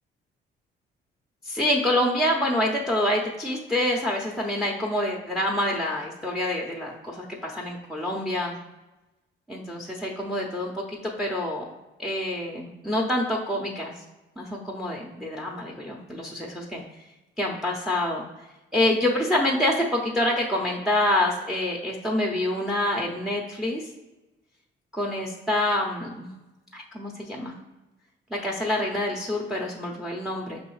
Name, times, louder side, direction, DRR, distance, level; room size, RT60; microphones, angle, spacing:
voice 1, 1.4-8.6 9.5-11.6 12.0-13.9 14.4-16.8 17.4-18.2 18.7-23.8 24.9-26.3 26.7-27.5 28.3-30.6, left 1 dB, ahead, 0 dB, 0.6 m, -26 dB
4.7 x 3.1 x 3.1 m, 1.0 s
cardioid pair, 90°, 20 cm